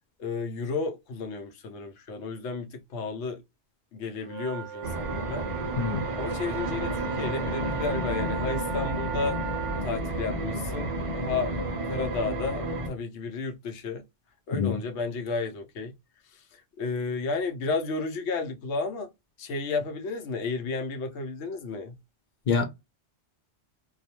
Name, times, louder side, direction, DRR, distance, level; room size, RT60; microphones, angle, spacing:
voice 1, 0.2-3.4 3.9-5.5 6.2-9.4 9.8-11.5 11.8-14.0 14.5-15.9 16.3-19.1 19.4-22.0, left 4 dB, 80° left, 0.9 m, -32 dB
sound 1, 4.2-9.9, right 8 dB, 70° right, 0.8 m, -37 dB
sound 2, 4.8-12.9, right 1 dB, 40° right, 0.5 m, -31 dB
voice 2, 5.8-6.0 14.5-14.7 22.5-22.6, left 5 dB, 55° left, 0.6 m, -25 dB
2.3 x 2.2 x 2.8 m
omnidirectional pair, 1.2 m